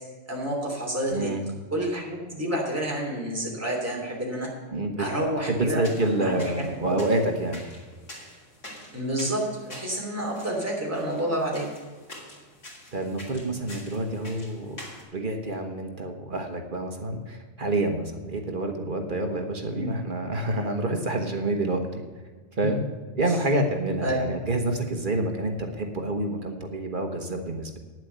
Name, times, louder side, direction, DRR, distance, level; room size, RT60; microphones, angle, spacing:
voice 1, 0.3-1.3 1.7-4.5 5.0-7.0 8.9-11.7 19.7-19.9 24.0-24.4, right 1 dB, 10° right, -3 dB, 3.0 m, -29 dB
voice 2, 1.1-1.4 4.7-5.0 5.4-7.6 12.9-14.8 15.1-22.1 22.6-22.8 23.1-27.8, right 2 dB, 45° right, 4 dB, 1.3 m, -28 dB
sound 1, 5.6-15.0, left 1 dB, 80° left, 3.3 m, -46 dB
9.7 x 7.6 x 8.0 m, 1.4 s
omnidirectional pair, 1.2 m